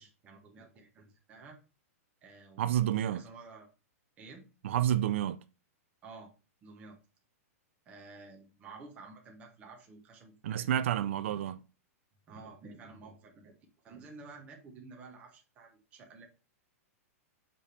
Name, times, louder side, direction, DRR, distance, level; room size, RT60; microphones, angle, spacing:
voice 1, 0.0-1.6 2.2-3.7 4.2-4.4 6.0-6.3 6.6-7.0 7.8-10.7 12.3-13.5 13.8-16.3, right 3 dB, 15° right, 1.1 m, -51 dB
voice 2, 2.6-3.2 4.6-5.4 10.4-11.6, right 11 dB, 55° right, 0.4 m, -29 dB
7.3 x 3.4 x 4.3 m
supercardioid pair, 180°, 8 cm